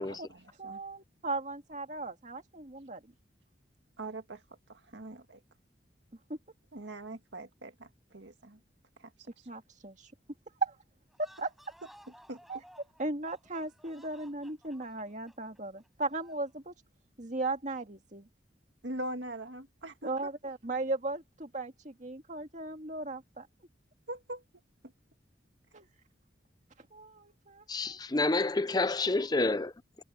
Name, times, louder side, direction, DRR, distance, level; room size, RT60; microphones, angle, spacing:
voice 1, 0.0-0.8 4.0-4.4 4.7-5.4 6.7-8.6 9.0-9.1 9.4-9.5 12.3-12.4 18.8-20.3 24.1-24.4, right 1 dB, 70° right, 2.0 m, -42 dB
voice 2, 0.6-3.0 6.3-6.4 9.5-10.1 10.6-10.7 11.2-11.5 12.5-12.6 13.0-16.7 17.2-18.3 20.0-23.5 25.7-25.8 26.9-28.0, right 2 dB, 40° right, 2.0 m, -37 dB
sound 1, 11.1-16.5, equal, ahead, 5.7 m, -58 dB
voice 3, 27.7-29.7, left 2 dB, 20° left, 0.6 m, -29 dB
head